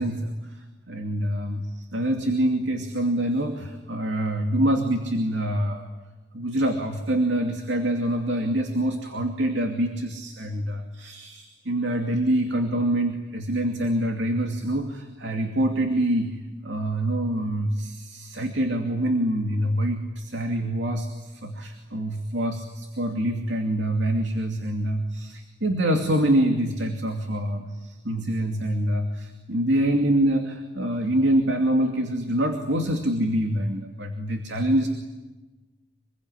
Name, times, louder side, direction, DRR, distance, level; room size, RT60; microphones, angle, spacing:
voice 1, 0.0-5.9 6.3-34.9, right 1 dB, 70° right, 4 dB, 2.6 m, -25 dB
27.0 x 22.5 x 9.9 m, 1.2 s
head